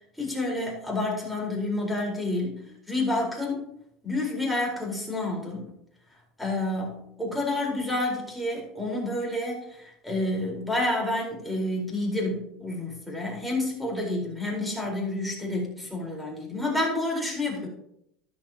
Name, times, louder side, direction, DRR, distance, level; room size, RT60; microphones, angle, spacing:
voice 1, 0.2-3.6 4.0-5.7 6.4-17.7, left 2 dB, 5° left, -2 dB, 4.5 m, -29 dB
13.0 x 11.0 x 3.0 m, 0.77 s
hypercardioid pair, 90°, 0 cm